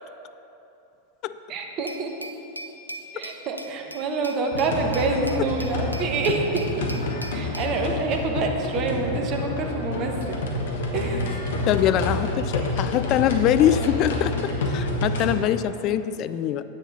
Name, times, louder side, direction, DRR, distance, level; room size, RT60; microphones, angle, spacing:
voice 1, 1.5-2.1 3.1-6.9 7.3-10.4 10.9-11.3, right 4 dB, 35° right, 3 dB, 1.2 m, -27 dB
Glass, 1.9-7.7, equal, 90° left, 0.6 m, -40 dB
sound 1, 4.5-15.4, left 2 dB, 60° left, 1.4 m, -28 dB
voice 2, 11.7-16.6, left 11 dB, 40° left, 12 dB, 0.4 m, -23 dB
9.7 x 9.0 x 4.1 m, 3.0 s
figure-of-eight pair, 90°, 0 cm